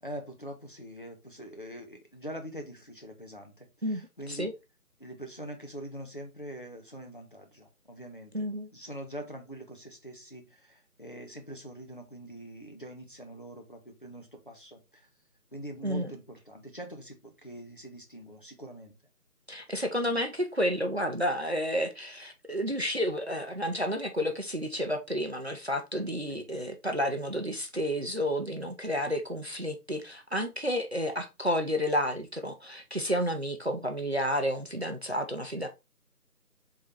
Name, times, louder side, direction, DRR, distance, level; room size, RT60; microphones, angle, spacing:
voice 1, 0.0-4.5 5.0-8.5 8.7-15.0 15.5-18.9 26.3-26.4, equal, 35° left, 0.7 m, -44 dB
voice 2, 3.8-4.5 8.3-8.7 15.8-16.1 19.5-35.7, equal, 45° right, 0.5 m, -31 dB
3.7 x 3.1 x 3.9 m
figure-of-eight pair, 165°, 46 cm